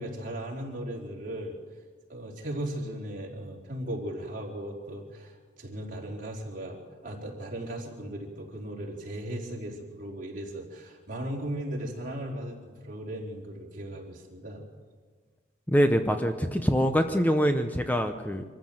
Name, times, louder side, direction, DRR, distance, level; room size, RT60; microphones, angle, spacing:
voice 1, 0.0-1.6 2.1-12.6 12.8-14.6, right 1 dB, 45° right, -2 dB, 4.2 m, -37 dB
voice 2, 15.7-18.4, equal, 10° left, 6 dB, 0.8 m, -24 dB
24.5 x 14.5 x 7.8 m, 1.5 s
head